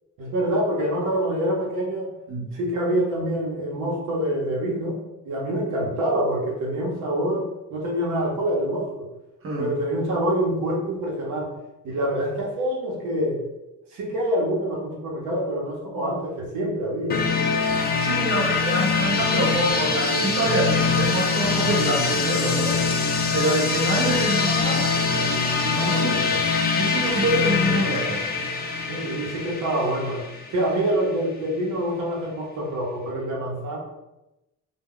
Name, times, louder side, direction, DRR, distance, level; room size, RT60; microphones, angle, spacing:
voice 1, 0.2-2.1 2.5-8.9 9.6-11.5 11.8-13.4 13.9-17.2 25.7-26.5 28.9-30.2 30.5-33.8, right 1 dB, 85° right, -3 dB, 0.8 m, -26 dB
sound 1, 17.1-30.8, left 4 dB, 30° left, 0.5 m, -23 dB
voice 2, 17.9-22.8 23.3-26.3 26.7-28.2, right 2 dB, 45° right, -2 dB, 0.8 m, -26 dB
2.2 x 2.1 x 3.6 m, 0.96 s
cardioid pair, 90°, 30 cm